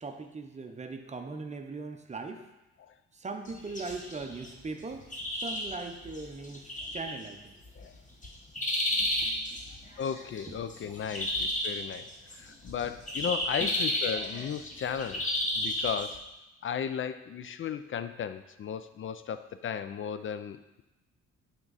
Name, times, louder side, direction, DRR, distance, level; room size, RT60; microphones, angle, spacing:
voice 1, 0.0-2.5 3.1-7.6 9.2-9.9 10.5-10.6 11.1-11.2 13.6-13.7, right 3 dB, 25° right, 5 dB, 0.7 m, -40 dB
sound 1, 3.5-16.2, left 1 dB, 25° left, 1.3 m, -33 dB
voice 2, 10.0-16.3 16.6-20.8, left 8 dB, 45° left, 11 dB, 0.4 m, -35 dB
8.7 x 3.6 x 4.0 m, 0.98 s
cardioid pair, 90°, 30 cm